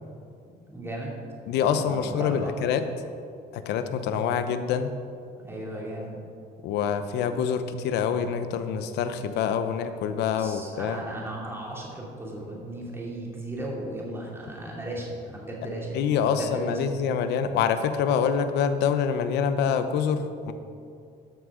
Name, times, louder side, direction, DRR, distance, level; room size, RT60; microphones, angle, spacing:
voice 1, 0.7-1.1 1.7-2.6 5.4-6.2 10.3-16.9, right 1 dB, 15° right, -3 dB, 2.5 m, -36 dB
voice 2, 1.5-2.8 3.5-4.9 6.6-11.0 15.9-20.5, left 7 dB, 80° left, 10 dB, 0.7 m, -26 dB
12.5 x 6.4 x 4.9 m, 2.4 s
cardioid pair, 110°, 17 cm